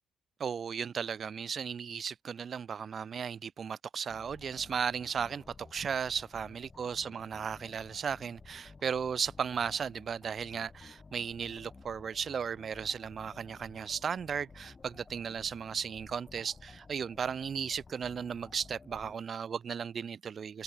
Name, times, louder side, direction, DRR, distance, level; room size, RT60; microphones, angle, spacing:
voice 1, 0.4-20.6, right 7 dB, 50° right, 0.6 m, -35 dB
sound 1, 4.1-19.2, left 4 dB, 30° left, 2.2 m, -54 dB
cardioid pair, 90°, 0 cm